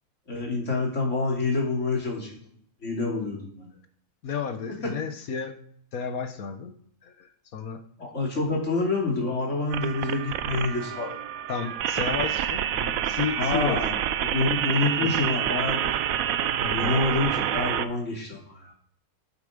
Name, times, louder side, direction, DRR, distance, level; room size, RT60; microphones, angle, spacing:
voice 1, 0.3-2.4 2.8-3.7 8.0-11.1 13.4-15.8 16.7-18.7, left 3 dB, 60° left, -2 dB, 3.3 m, -27 dB
voice 2, 4.2-5.6 5.9-6.7 7.0-7.8 11.5-13.8 14.9-15.1 16.6-16.9, left 6 dB, 90° left, 9 dB, 1.6 m, -32 dB
sound 1, 9.7-17.9, right 10 dB, 80° right, 1.1 m, -27 dB
12.0 x 8.7 x 5.1 m, 0.63 s
omnidirectional pair, 1.4 m